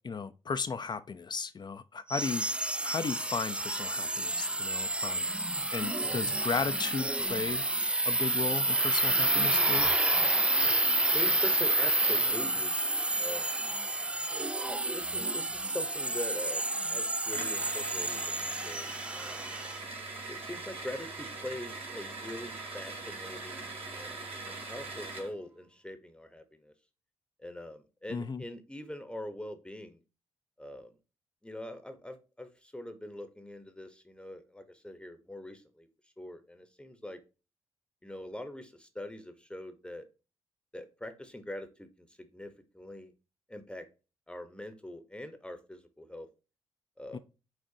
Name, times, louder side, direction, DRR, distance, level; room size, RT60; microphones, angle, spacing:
voice 1, 0.0-2.4 2.8-5.3 5.7-7.6 8.0-9.9 28.1-28.4 47.1-47.2, left 5 dB, 40° left, 0.6 m, -35 dB
sound 1, 2.1-19.8, right 2 dB, 10° right, 0.3 m, -29 dB
voice 2, 10.9-12.8 13.2-13.5 14.6-19.5 20.3-26.7 27.4-30.0 30.6-31.0 31.4-37.2 38.0-40.1 40.7-43.1 43.5-43.9 44.3-46.3 47.0-47.2, left 1 dB, 10° left, 1.0 m, -43 dB
sound 2, 17.3-25.3, right 3 dB, 55° right, 2.0 m, -41 dB
7.3 x 2.5 x 2.7 m
supercardioid pair, 55°, 12 cm